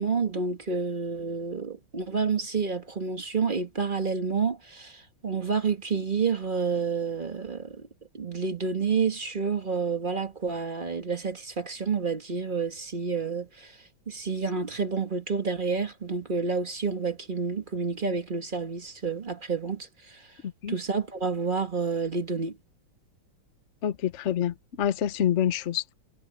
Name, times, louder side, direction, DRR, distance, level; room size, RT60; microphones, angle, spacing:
voice 1, 0.0-7.9 8.1-13.8 14.1-20.3 20.7-22.6, right 5 dB, 25° right, 1.4 m, -29 dB
voice 2, 20.4-20.8 23.8-25.9, left 10 dB, 45° left, 1.1 m, -27 dB
omnidirectional pair, 2.3 m